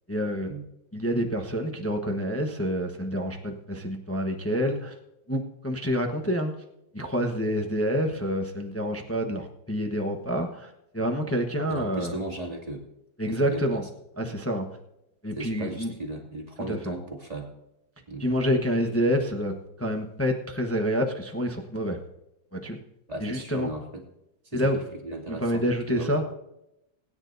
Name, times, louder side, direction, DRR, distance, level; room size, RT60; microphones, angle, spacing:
voice 1, 0.1-0.5 0.9-4.9 5.3-6.5 6.9-12.1 13.2-13.8 14.2-14.7 15.2-15.9 16.7-16.9 18.2-19.5 19.8-22.0 22.5-22.8 23.2-23.7 24.5-24.8 25.3-26.2, equal, 15° left, 3 dB, 0.4 m, -27 dB
voice 2, 11.7-12.8 13.3-13.8 15.4-17.5 18.1-18.5 23.1-24.0 24.4-26.3, right 2 dB, 20° right, 0 dB, 2.3 m, -36 dB
20.5 x 10.0 x 2.7 m, 0.84 s
omnidirectional pair, 2.3 m